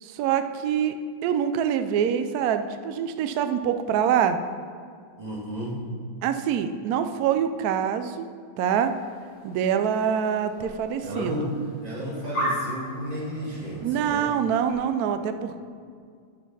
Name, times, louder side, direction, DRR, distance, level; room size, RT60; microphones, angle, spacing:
voice 1, 0.0-0.9 1.2-4.4 6.2-8.2 8.6-8.9 9.4-11.5 13.8-15.6, right 8 dB, 80° right, 9 dB, 0.8 m, -25 dB
voice 2, 5.2-5.8 11.0-11.5 11.8-14.3, equal, 20° right, -6 dB, 2.0 m, -32 dB
sound 1, 8.7-14.7, equal, 35° left, 3.0 m, -37 dB
9.6 x 5.9 x 5.4 m, 2.2 s
omnidirectional pair, 2.2 m